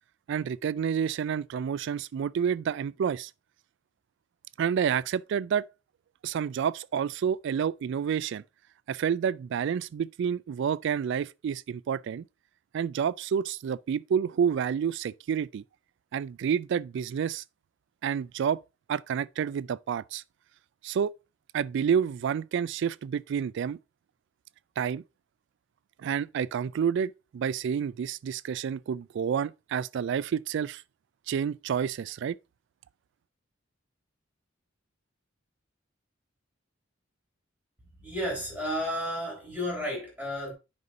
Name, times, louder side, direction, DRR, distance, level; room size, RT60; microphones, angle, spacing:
voice 1, 0.3-3.3 4.6-5.7 6.2-8.4 8.9-12.2 12.7-15.6 16.1-17.4 18.0-18.6 18.9-20.2 20.8-21.1 21.5-23.8 24.8-25.0 26.0-30.8 31.3-32.4, right 7 dB, 65° right, 0.3 m, -29 dB
voice 2, 38.0-40.5, equal, 10° right, 4.1 m, -32 dB
9.5 x 5.3 x 2.6 m
head